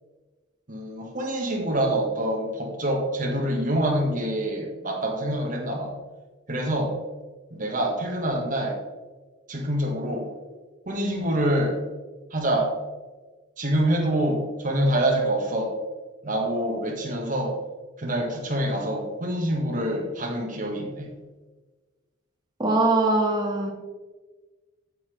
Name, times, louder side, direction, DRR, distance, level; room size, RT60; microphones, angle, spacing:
voice 1, 0.7-5.9 6.5-7.0 7.5-8.8 9.5-10.3 10.8-11.8 12.3-12.7 13.6-15.8 16.2-17.6 18.0-21.1, right 1 dB, 40° right, 0 dB, 1.7 m, -26 dB
voice 2, 22.6-23.7, right 2 dB, 20° right, 0 dB, 1.5 m, -22 dB
8.5 x 8.2 x 3.4 m, 1.3 s
head